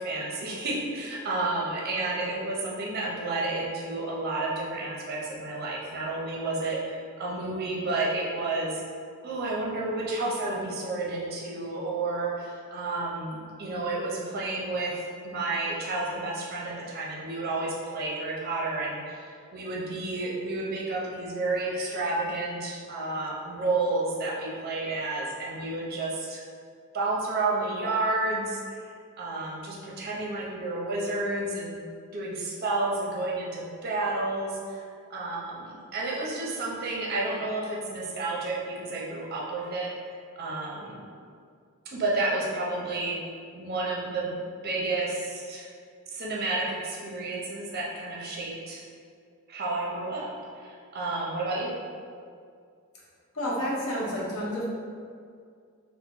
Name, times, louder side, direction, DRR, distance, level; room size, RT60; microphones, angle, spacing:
voice 1, 0.0-8.8 9.2-26.4 26.9-28.9 29.2-31.8 32.1-39.9 40.4-41.0 41.9-43.2 43.5-44.3 44.6-45.7 46.1-48.8 49.5-51.7, right 2 dB, 45° right, -4 dB, 0.5 m, -31 dB
voice 2, 53.3-54.6, equal, 75° left, -5 dB, 0.8 m, -30 dB
2.9 x 2.0 x 3.6 m, 2.2 s
head